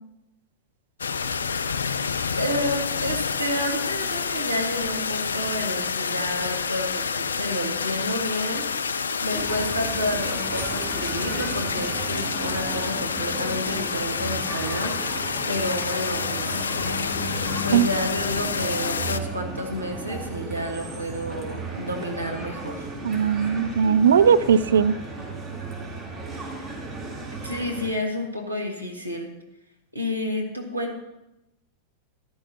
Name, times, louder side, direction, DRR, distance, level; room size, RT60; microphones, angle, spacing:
sound 1, 1.0-19.2, left 5 dB, 70° left, 0.4 m, -28 dB
voice 1, 2.4-8.7 9.0-16.7 17.6-22.9 27.4-29.3 29.9-31.0, left 1 dB, 85° right, 1 dB, 1.9 m, -30 dB
sound 2, 9.3-27.9, right 3 dB, 15° right, 3.4 m, -35 dB
voice 2, 23.0-25.0, right 7 dB, 65° right, 14 dB, 0.4 m, -18 dB
14.5 x 12.0 x 2.9 m, 0.89 s
figure-of-eight pair, 90°, 0 cm